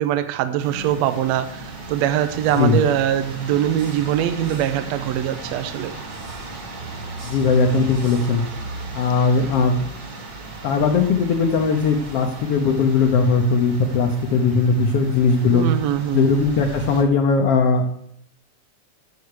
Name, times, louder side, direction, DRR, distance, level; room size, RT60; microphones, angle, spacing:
voice 1, 0.0-1.6 1.9-5.9 15.5-16.3, right 11 dB, 75° right, 9 dB, 1.6 m, -22 dB
sound 1, 0.6-17.0, right 2 dB, 40° right, 1.5 m, -36 dB
voice 2, 7.2-8.4 8.9-9.9 10.6-15.6 16.1-17.9, left 4 dB, 65° left, 2 dB, 1.5 m, -19 dB
13.0 x 7.1 x 4.7 m, 0.72 s
omnidirectional pair, 3.7 m